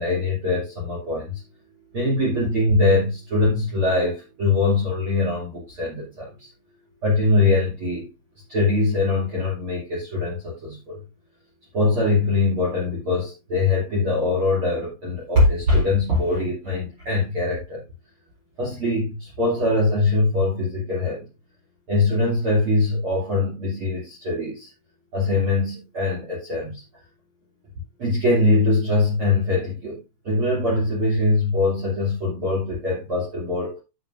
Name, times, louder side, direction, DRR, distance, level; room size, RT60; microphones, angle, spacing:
voice 1, 0.0-1.4 1.9-6.5 7.0-8.1 8.5-11.0 11.7-17.8 18.6-21.3 21.9-24.7 25.1-26.8 28.0-33.8, left 2 dB, 35° right, 2.9 m, -22 dB
12.5 x 7.7 x 2.5 m
omnidirectional pair, 5.0 m